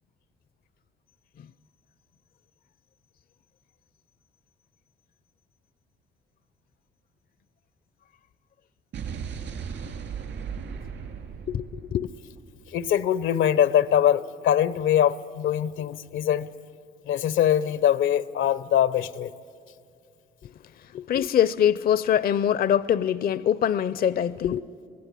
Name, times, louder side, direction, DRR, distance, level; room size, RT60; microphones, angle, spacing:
Explosion, 8.9-13.0, right 6 dB, 70° right, 2.8 m, -37 dB
voice 1, 11.5-12.1 20.9-24.6, left 9 dB, 50° left, 0.5 m, -23 dB
voice 2, 12.7-16.5 17.1-19.3, left 10 dB, 80° left, 0.7 m, -22 dB
24.0 x 17.5 x 9.9 m
cardioid pair, 90°, 20 cm